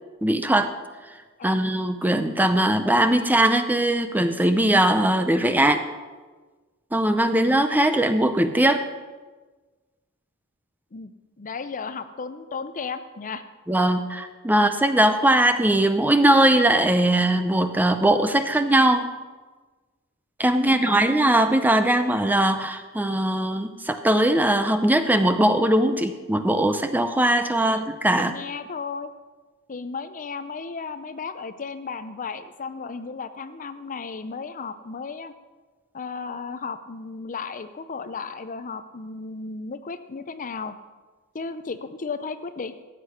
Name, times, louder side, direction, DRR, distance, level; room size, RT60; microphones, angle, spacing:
voice 1, 0.2-0.7 1.4-5.8 6.9-8.9 13.7-19.1 20.4-28.3, right 1 dB, 10° right, 9 dB, 0.5 m, -20 dB
voice 2, 11.4-13.4 15.2-15.3 20.6-21.0 27.7-27.8 28.2-29.1 29.7-35.3 35.9-40.7 41.3-42.7, left 4 dB, 35° left, 11 dB, 0.6 m, -34 dB
14.5 x 8.4 x 5.7 m, 1.3 s
head